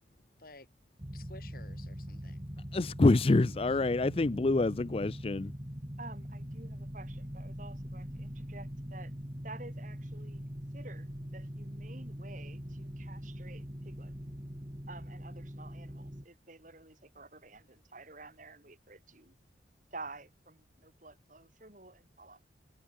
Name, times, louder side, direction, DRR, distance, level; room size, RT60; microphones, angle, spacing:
voice 1, 0.2-0.7 1.1-2.5 4.1-4.4, left 2 dB, 50° left, 6.0 m, -54 dB
sound 1, 1.0-16.3, equal, 25° right, 3.3 m, -42 dB
voice 2, 2.7-5.5, left 2 dB, 30° left, 0.4 m, -26 dB
voice 3, 6.0-9.1 9.4-14.1 14.9-19.3 19.9-22.4, right 3 dB, 45° right, 6.5 m, -51 dB
head